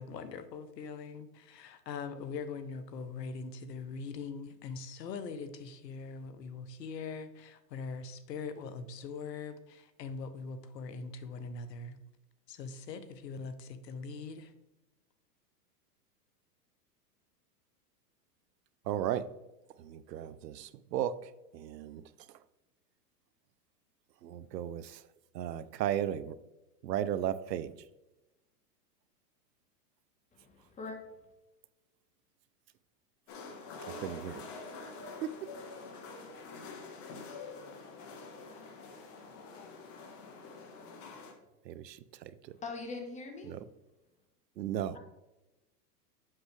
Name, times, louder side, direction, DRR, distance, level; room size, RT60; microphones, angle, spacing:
voice 1, 0.0-12.0 12.5-14.5, left 4 dB, 90° left, 11 dB, 1.0 m, -42 dB
voice 2, 18.9-19.2 19.8-21.2 21.5-22.0 24.2-25.0 25.3-26.3 26.8-27.7 34.0-34.5 35.2-35.3 41.7-42.0 43.5-43.6 44.6-45.0, right 10 dB, 90° right, 14 dB, 0.7 m, -35 dB
voice 3, 30.3-31.0 42.5-43.6 44.9-45.0, left 3 dB, 15° left, 4 dB, 1.1 m, -42 dB
sound 1, 33.3-41.3, left 3 dB, 50° left, 1.5 m, -46 dB
7.8 x 6.2 x 3.3 m, 1.0 s
hypercardioid pair, 130°, 48 cm